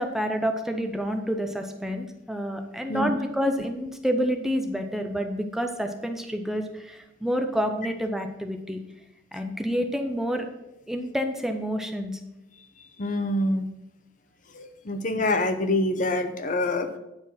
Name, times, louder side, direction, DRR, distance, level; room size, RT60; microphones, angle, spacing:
voice 1, 0.0-8.8 9.3-10.5 10.9-12.2, equal, ahead, 5 dB, 0.6 m, -28 dB
voice 2, 13.0-13.7 14.5-17.0, left 1 dB, 45° left, 8 dB, 0.7 m, -26 dB
9.6 x 4.5 x 5.7 m, 0.90 s
head